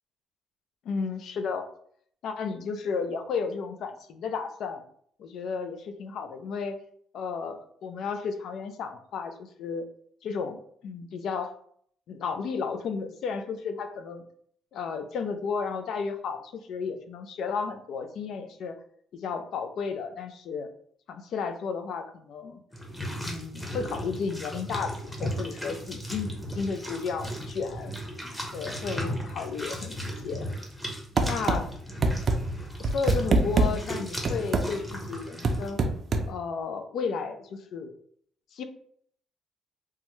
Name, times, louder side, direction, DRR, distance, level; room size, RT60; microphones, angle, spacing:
voice 1, 0.9-1.7 2.2-4.8 5.2-6.8 7.1-9.9 10.2-11.5 12.1-14.2 14.7-18.8 19.1-20.7 21.1-22.6 23.2-28.0 28.2-30.5 31.2-31.7 32.8-35.8 36.3-37.9 38.5-38.6, left 5 dB, 70° left, 8 dB, 0.4 m, -33 dB
sound 1, 22.7-35.7, equal, 10° left, 0.7 m, -36 dB
sound 2, 31.2-31.6 32.0-32.4 32.8-33.7 34.3-34.7 35.4-36.3, right 3 dB, 50° right, 0.4 m, -22 dB
3.4 x 2.1 x 3.0 m, 0.64 s
cardioid pair, 105°, 0 cm